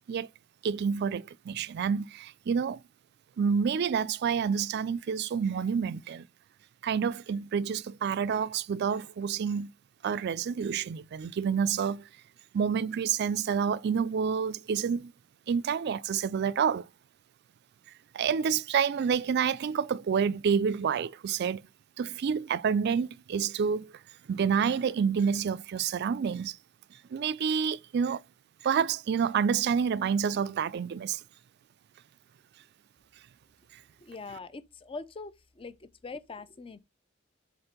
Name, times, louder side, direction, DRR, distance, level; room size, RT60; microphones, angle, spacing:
voice 1, 0.6-2.8 3.4-6.3 6.8-9.7 10.0-12.0 12.5-15.1 15.5-16.9 18.1-21.6 22.0-23.9 24.3-26.6 27.1-28.2 28.6-31.2, right 6 dB, 55° right, 0.3 m, -28 dB
voice 2, 34.0-36.8, left 3 dB, 25° left, 0.5 m, -43 dB
4.4 x 4.2 x 5.1 m
head